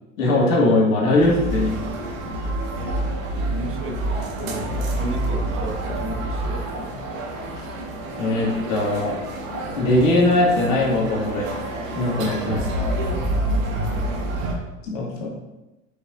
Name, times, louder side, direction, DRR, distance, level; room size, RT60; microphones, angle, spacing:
voice 1, 0.2-1.7 8.2-9.2 9.7-11.5 11.9-12.6 14.9-15.3, left 2 dB, 85° left, -3 dB, 2.4 m, -20 dB
sound 1, 1.2-14.5, right 1 dB, 80° right, 1.9 m, -27 dB
voice 2, 3.5-6.9 13.3-14.1, right 1 dB, 30° right, 3 dB, 1.2 m, -34 dB
8.6 x 5.4 x 2.7 m, 1.0 s
hypercardioid pair, 90°, 39 cm